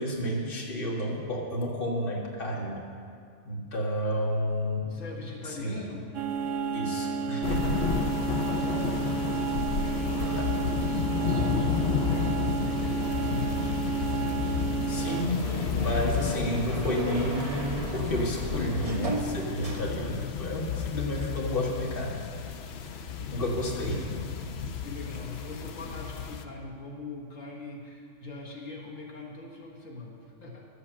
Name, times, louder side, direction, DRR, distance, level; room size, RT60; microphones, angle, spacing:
voice 1, 0.0-2.8 3.4-4.9 5.5-5.8 6.7-7.8 10.4-10.5 14.9-15.5 15.8-22.3 23.3-24.0, equal, 45° left, -2 dB, 1.8 m, -31 dB
voice 2, 4.8-6.1 8.3-9.1 9.7-13.5 23.9-24.3 24.8-30.7, left 2 dB, 85° left, -2 dB, 2.1 m, -42 dB
sound 1, 6.1-15.2, right 6 dB, 80° right, 1.0 m, -31 dB
sound 2, 7.4-26.4, left 6 dB, 60° left, 0.9 m, -32 dB
sound 3, 10.0-20.6 20.9-22.2, right 2 dB, 30° right, 1.1 m, -39 dB
12.0 x 8.2 x 7.4 m, 2.3 s
omnidirectional pair, 1.3 m